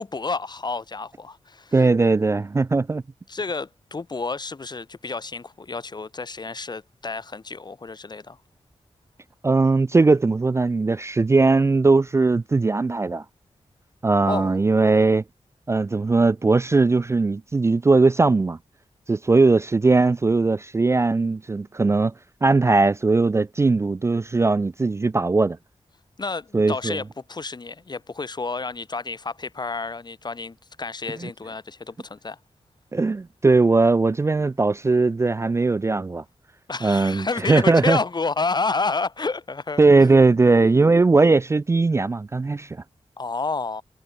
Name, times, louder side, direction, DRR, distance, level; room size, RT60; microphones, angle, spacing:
voice 1, 0.0-1.8 3.3-8.4 14.3-14.6 26.2-32.4 36.7-39.8 43.2-43.8, left 4 dB, 40° left, 4.0 m, -30 dB
voice 2, 1.7-3.0 9.4-13.2 14.0-15.2 15.7-18.6 19.1-22.1 22.4-25.6 26.5-27.0 31.2-31.3 32.9-36.2 36.8-38.0 39.8-42.7, right 3 dB, 25° right, 0.3 m, -19 dB
wide cardioid pair, 140°, 12 cm